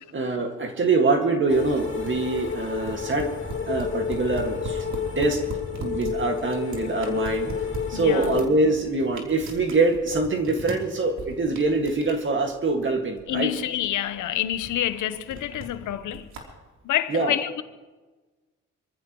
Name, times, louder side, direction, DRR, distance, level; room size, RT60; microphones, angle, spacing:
voice 1, 0.0-3.3 3.7-4.9 5.2-5.4 5.8-7.5 7.9-13.5 17.1-17.4, right 3 dB, 40° right, 2.0 m, -24 dB
sound 1, 1.5-8.5, left 7 dB, 40° left, 2.4 m, -30 dB
sound 2, 2.0-16.4, right 2 dB, 65° right, 3.3 m, -40 dB
voice 2, 7.9-8.3 13.3-16.3 16.8-17.6, left 12 dB, 75° left, 1.0 m, -27 dB
25.5 x 14.5 x 3.1 m
cardioid pair, 90°, 30 cm